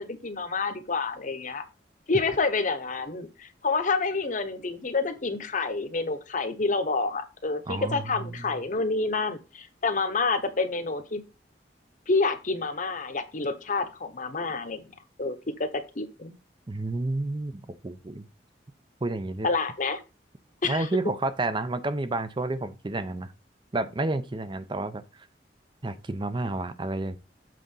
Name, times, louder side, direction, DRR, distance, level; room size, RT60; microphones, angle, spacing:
voice 1, 0.0-1.6 2.1-11.2 12.1-14.9 15.2-16.3 19.4-20.0 20.6-20.9, left 3 dB, 45° left, 1.0 m, -28 dB
voice 2, 7.7-8.6 16.7-18.3 19.0-19.5 20.6-23.3 23.7-25.0 25.8-27.2, right 2 dB, 25° right, 0.6 m, -30 dB
7.7 x 3.8 x 5.5 m
head